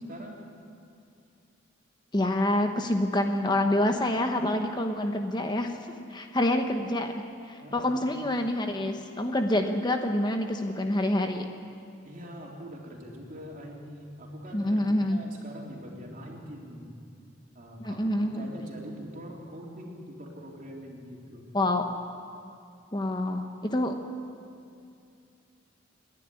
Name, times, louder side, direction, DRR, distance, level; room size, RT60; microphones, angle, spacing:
voice 1, 0.1-0.4 7.6-8.1 12.1-16.9 17.5-21.4, equal, 45° right, -1 dB, 3.6 m, -43 dB
voice 2, 2.1-11.5 14.5-15.2 17.8-18.5 21.5-21.9 22.9-23.9, left 1 dB, 25° left, 5 dB, 1.1 m, -27 dB
29.0 x 11.0 x 9.8 m, 2.5 s
head